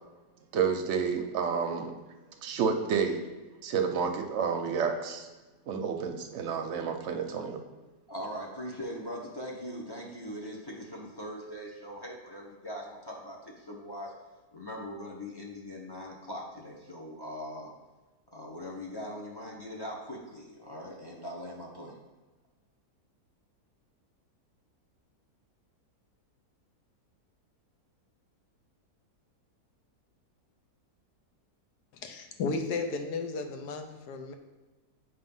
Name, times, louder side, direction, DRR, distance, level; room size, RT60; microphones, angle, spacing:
voice 1, 0.5-1.9 2.4-3.2 3.6-5.3 5.7-7.6, right 6 dB, 60° right, 4 dB, 0.8 m, -30 dB
voice 2, 8.1-14.1 14.5-17.7 18.3-21.9, equal, 20° left, -3 dB, 0.7 m, -41 dB
voice 3, 32.0-34.3, left 4 dB, 85° left, 5 dB, 1.3 m, -34 dB
7.1 x 3.1 x 5.4 m, 1.2 s
omnidirectional pair, 1.7 m